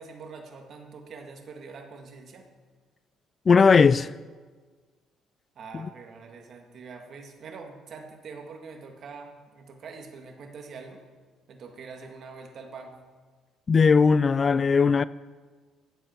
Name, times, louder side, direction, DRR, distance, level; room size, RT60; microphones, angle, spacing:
voice 1, 0.0-2.5 5.6-11.0 11.5-13.0, right 4 dB, 55° right, 2.0 m, -44 dB
voice 2, 3.5-4.1 13.7-15.0, left 5 dB, 35° left, 0.3 m, -18 dB
15.0 x 8.1 x 6.0 m
cardioid pair, 105°, 0 cm